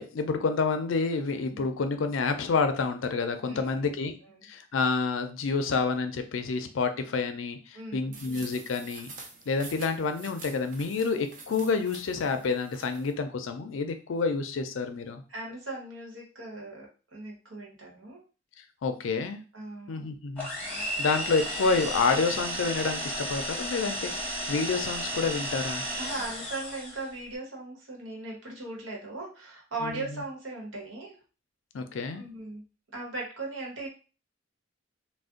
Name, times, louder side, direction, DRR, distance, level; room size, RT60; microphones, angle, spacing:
voice 1, 0.0-4.1 4.4-9.1 9.5-15.2 18.8-19.4 19.9-20.5 21.0-25.8 29.8-30.1 31.7-32.2, left 4 dB, 85° left, 8 dB, 0.4 m, -28 dB
voice 2, 3.4-4.0 4.3-4.4 7.7-8.1 15.3-18.2 19.5-20.0 26.0-31.2 32.1-32.6 32.9-33.9, right 2 dB, 75° right, -2 dB, 1.1 m, -38 dB
sound 1, 8.1-13.1, right 3 dB, 45° right, 0.6 m, -47 dB
sound 2, 20.4-27.1, right 1 dB, 10° left, 0.9 m, -33 dB
2.5 x 2.1 x 3.6 m, 0.35 s
head